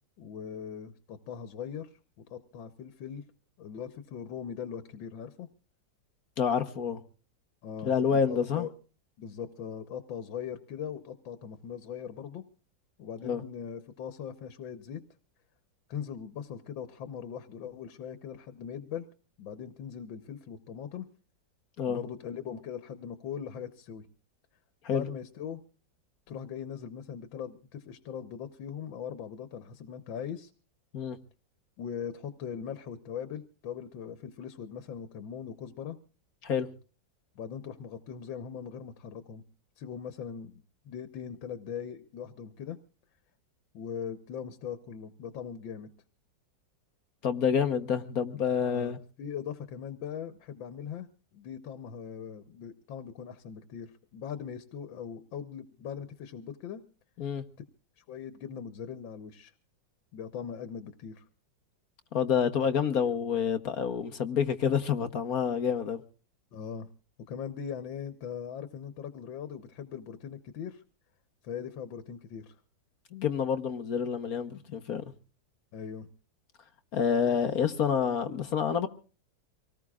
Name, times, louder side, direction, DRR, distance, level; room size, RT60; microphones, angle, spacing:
voice 1, 0.2-3.2 3.6-5.5 7.6-8.7 9.2-12.4 13.0-15.0 15.9-19.1 19.4-21.1 21.9-24.1 24.9-25.6 26.3-30.5 31.8-36.0 37.4-39.4 39.8-40.5 40.8-42.8 43.7-45.9 48.6-51.1 51.3-56.8 58.0-59.5 60.1-61.3 66.5-66.9 67.3-70.8 71.4-72.6 75.7-76.1, left 8 dB, 85° left, 1.8 m, -40 dB
voice 2, 6.4-7.0 7.8-8.7 13.2-13.4 21.8-22.0 24.8-25.0 30.9-31.2 36.4-36.7 47.2-49.0 57.2-57.4 62.1-66.0 73.1-75.0 76.9-78.9, left 7 dB, 55° left, 1.4 m, -28 dB
25.5 x 19.0 x 2.4 m
omnidirectional pair, 2.0 m